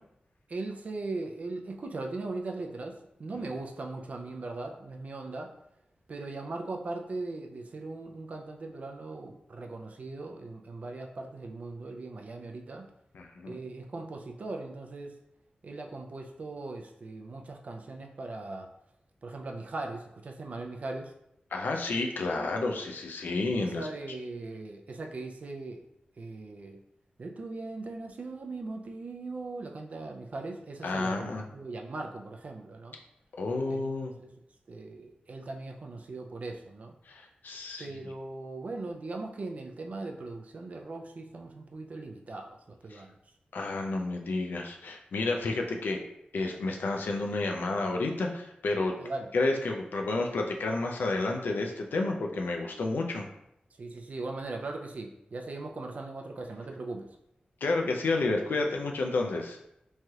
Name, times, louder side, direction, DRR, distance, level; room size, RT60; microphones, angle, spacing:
voice 1, 0.5-5.5 6.1-12.9 13.4-15.1 15.6-18.7 19.2-21.1 23.6-25.8 26.2-26.8 27.2-33.0 33.7-33.9 34.2-34.3 34.7-36.9 37.8-43.1 45.5-45.6 49.0-49.3 53.8-57.1, right 3 dB, 50° right, 3 dB, 0.4 m, -39 dB
voice 2, 13.1-13.6 21.5-23.9 30.8-31.4 33.4-34.1 37.1-38.0 42.9-43.0 43.5-46.0 46.3-48.9 49.3-53.3 57.6-59.6, left 3 dB, 85° left, 2 dB, 0.4 m, -30 dB
3.1 x 2.3 x 2.7 m, 0.80 s
wide cardioid pair, 135°, 3 cm